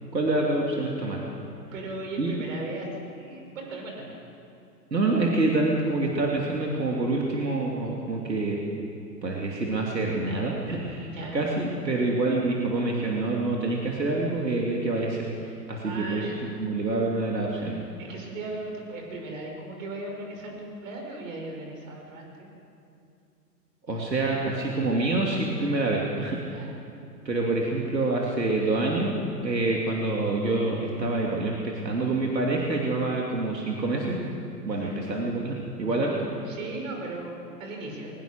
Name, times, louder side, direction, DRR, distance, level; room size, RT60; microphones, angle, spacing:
voice 1, 0.1-1.2 2.2-2.3 4.9-8.6 9.2-16.3 16.6-17.8 23.9-26.5 27.2-29.1 29.4-34.2 34.6-36.6, right 2 dB, 80° right, -2 dB, 2.9 m, -27 dB
voice 2, 1.7-2.9 3.1-4.2 11.0-11.4 15.8-16.5 18.0-22.5 26.5-26.7 34.7-35.0 36.5-38.1, right 2 dB, 50° right, 1 dB, 5.8 m, -37 dB
22.0 x 20.0 x 6.5 m, 2.6 s
figure-of-eight pair, 115°, 49 cm